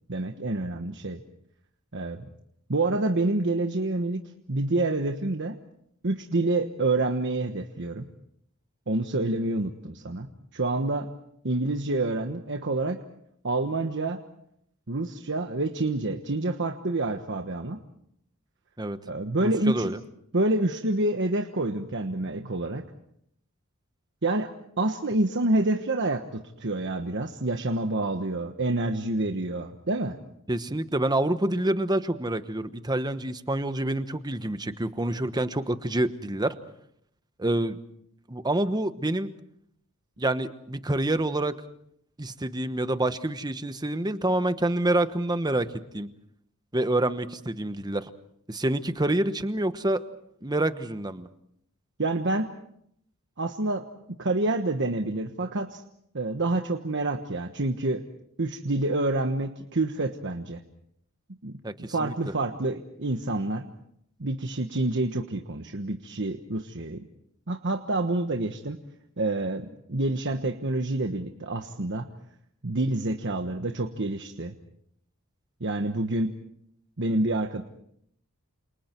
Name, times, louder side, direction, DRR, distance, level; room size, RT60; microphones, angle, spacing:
voice 1, 0.1-1.2 1.9-2.3 2.7-5.6 6.0-8.0 8.9-10.3 10.5-11.1 11.4-13.0 13.4-14.2 14.9-17.8 19.1-20.0 20.3-22.8 24.2-24.5 24.8-30.2 52.0-52.5 53.4-53.9 54.2-55.8 56.1-58.0 58.4-60.6 61.4-61.5 61.9-63.6 64.2-67.1 67.5-68.8 69.2-72.1 72.6-74.5 75.6-76.3 77.0-77.6, right 2 dB, 55° right, 5 dB, 1.3 m, -27 dB
voice 2, 19.4-20.0 30.5-36.6 37.4-37.8 38.3-39.3 40.2-41.6 42.2-46.1 46.7-48.1 48.5-50.0 50.4-51.3 61.6-62.3, right 1 dB, 20° right, 11 dB, 1.1 m, -27 dB
28.5 x 28.0 x 4.5 m, 0.72 s
head